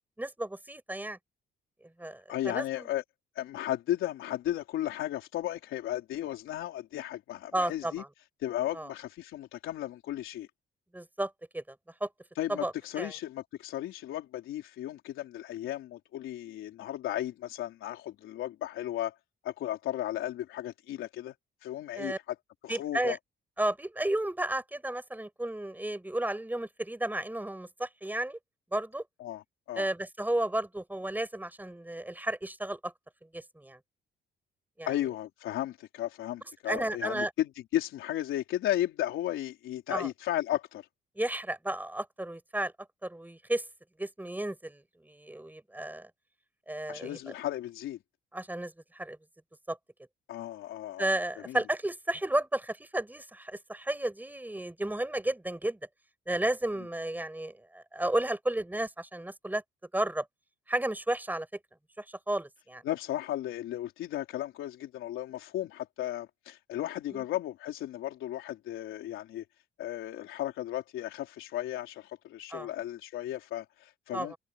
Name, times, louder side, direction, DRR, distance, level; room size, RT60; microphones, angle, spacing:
voice 1, 0.2-1.2 2.0-2.7 7.5-8.1 8.7-8.9 10.9-12.1 12.5-13.1 21.9-22.2 22.7-23.2 23.6-28.4 28.7-29.0 29.8-32.9 33.3-33.8 34.8-34.9 36.7-37.3 39.9-40.1 41.2-42.7 43.0-43.6 44.0-46.1 46.7-47.2 48.3-49.2 49.7-49.8 51.0-55.8 56.3-59.6 59.9-60.2 60.7-61.5 62.0-62.8 67.1-67.2 72.5-72.7 74.1-74.4, right 1 dB, 10° right, 7.9 m, -33 dB
voice 2, 2.3-3.0 3.4-8.0 8.4-10.5 12.4-19.1 19.4-21.3 21.6-22.1 22.6-23.2 29.2-29.9 34.9-40.8 46.9-48.0 50.3-51.1 51.5-51.6 62.8-69.4 69.8-74.3, left 13 dB, 85° left, 3.9 m, -35 dB
cardioid pair, 90°, 20 cm